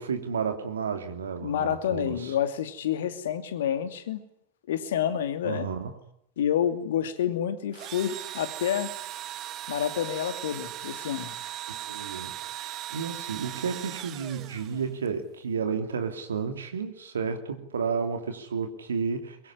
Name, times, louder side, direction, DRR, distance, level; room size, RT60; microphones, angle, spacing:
voice 1, 0.0-2.4 5.4-5.9 11.7-19.5, right 6 dB, 70° right, 6 dB, 2.8 m, -32 dB
voice 2, 1.4-4.2 4.7-5.7 6.4-8.9 9.7-11.3, left 9 dB, 60° left, 9 dB, 2.6 m, -28 dB
Engine / Drill, 7.7-15.1, right 13 dB, 35° right, 1.3 m, -38 dB
23.5 x 22.5 x 10.0 m, 0.73 s
figure-of-eight pair, 90°, 0 cm